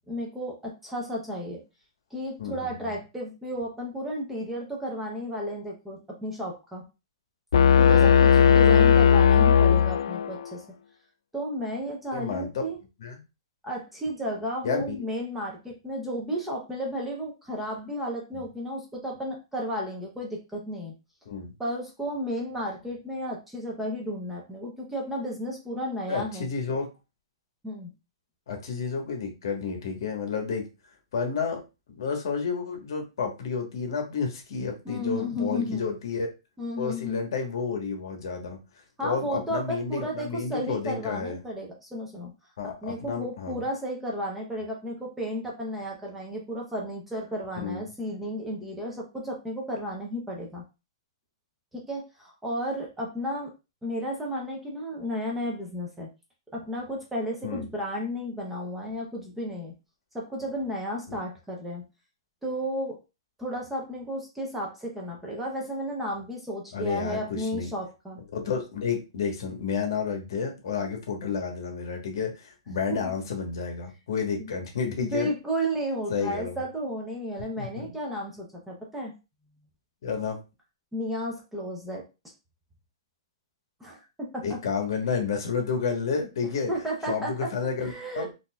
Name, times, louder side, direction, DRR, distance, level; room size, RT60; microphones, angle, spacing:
voice 1, 0.1-1.6 2.1-6.8 7.8-10.6 11.3-12.8 13.6-20.9 21.6-26.5 27.6-27.9 34.8-35.9 36.6-37.2 39.0-42.3 42.6-50.6 51.7-53.5 53.8-56.1 56.5-59.7 60.1-61.8 62.4-63.0 63.4-68.2 72.9-73.1 74.4-74.5 75.0-79.1 80.9-82.0 83.8-84.5 86.7-87.5 87.8-88.3, equal, 5° right, -2 dB, 0.6 m, -33 dB
voice 2, 2.4-3.0 12.1-12.7 13.0-13.2 14.6-15.0 21.3-21.5 26.1-26.9 28.5-31.6 32.0-36.3 36.8-38.6 39.0-41.4 42.6-43.6 47.5-47.8 57.4-57.7 61.1-61.2 66.7-67.7 68.3-75.3 76.1-76.6 77.6-77.9 80.0-80.4 84.4-86.7 87.1-88.3, left 5 dB, 55° left, 3 dB, 1.1 m, -31 dB
sound 1, 7.5-10.5, left 7 dB, 80° left, 0.4 m, -17 dB
4.0 x 2.5 x 2.2 m, 0.28 s
hypercardioid pair, 170°, 3 cm